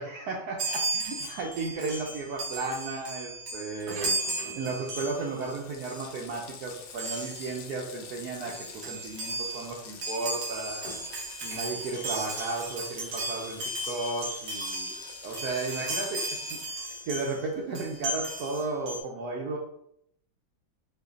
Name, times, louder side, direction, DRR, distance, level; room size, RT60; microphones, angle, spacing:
voice 1, 0.0-4.1 4.6-10.8 11.4-14.9 15.2-19.6, right 3 dB, 85° right, -2 dB, 0.8 m, -34 dB
Chime, 0.6-5.5 5.8-6.1 7.0-7.6 8.1-8.2 8.4-17.4 17.7-19.0, right 2 dB, 60° right, 1.2 m, -35 dB
Water tap faucet, 4.3-4.4 4.6-18.4, left 6 dB, 75° left, 1.1 m, -47 dB
4.5 x 2.5 x 2.4 m, 0.73 s
omnidirectional pair, 2.3 m